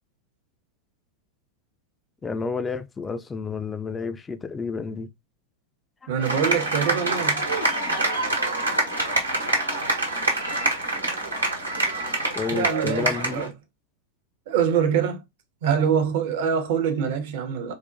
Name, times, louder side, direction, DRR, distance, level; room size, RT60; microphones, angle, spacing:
voice 1, 2.2-5.1 6.2-6.3 12.3-13.5, left 4 dB, 15° left, 0.4 m, -30 dB
voice 2, 6.1-7.5 12.5-13.5 14.5-15.2 15.6-17.7, right 7 dB, 50° right, 0.7 m, -24 dB
sound 1, 6.2-13.5, right 2 dB, 80° right, 1.0 m, -25 dB
4.0 x 2.1 x 2.5 m
figure-of-eight pair, 90°, 0 cm